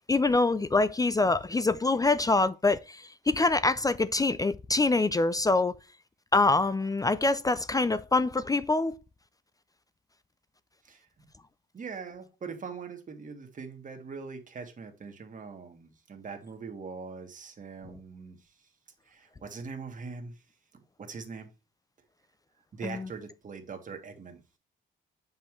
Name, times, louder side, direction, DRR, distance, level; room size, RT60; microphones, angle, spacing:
voice 1, 0.1-5.8 6.3-8.9 22.8-23.1, left 3 dB, 20° left, 0.4 m, -25 dB
voice 2, 10.8-11.3 11.7-18.5 19.1-20.4 21.0-21.5 22.7-24.4, right 5 dB, 40° right, 1.7 m, -42 dB
6.8 x 5.5 x 3.1 m
cardioid pair, 90°, 20 cm